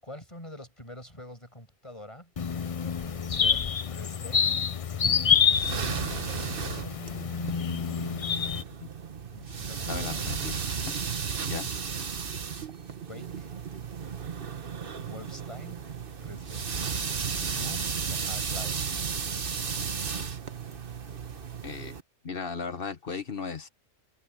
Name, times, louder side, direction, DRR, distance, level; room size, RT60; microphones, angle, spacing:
voice 1, 0.0-2.3 3.0-4.5 5.0-7.0 9.3-10.2 13.1-13.5 15.0-15.9 16.2-16.7 17.4-18.9, left 1 dB, 20° left, 7.7 m, -46 dB
sound 1, 2.4-8.6, left 7 dB, 60° left, 0.3 m, -27 dB
sound 2, 5.3-22.0, right 6 dB, 45° right, 1.2 m, -34 dB
voice 2, 9.9-11.0 11.5-11.7 21.6-21.9 22.2-23.7, left 5 dB, 40° left, 1.4 m, -36 dB
omnidirectional pair, 1.5 m